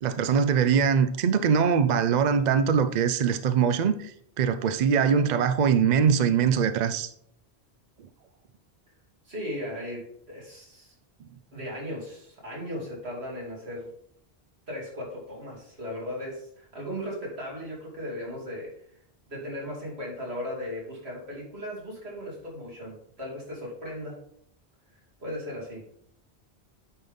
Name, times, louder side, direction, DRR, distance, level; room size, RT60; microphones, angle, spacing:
voice 1, 0.0-7.1, right 7 dB, 55° right, 0.5 m, -22 dB
voice 2, 9.2-10.9 11.5-13.9 14.7-18.7 19.3-24.2 25.2-25.8, left 1 dB, 75° right, 3.1 m, -37 dB
9.5 x 3.7 x 5.3 m
omnidirectional pair, 1.1 m